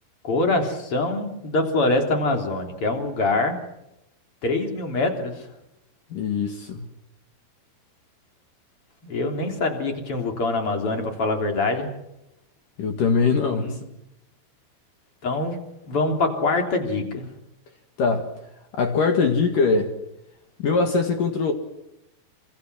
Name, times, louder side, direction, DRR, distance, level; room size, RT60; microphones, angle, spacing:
voice 1, 0.2-3.6 4.4-5.5 9.0-11.9 13.5-13.8 15.2-15.6 15.9-17.3, left 2 dB, 30° left, 3.7 m, -24 dB
voice 2, 6.1-6.8 12.8-13.8 18.0-18.3 18.7-19.9 20.6-21.5, left 4 dB, 55° left, 2.8 m, -22 dB
27.0 x 25.5 x 6.3 m
omnidirectional pair, 5.7 m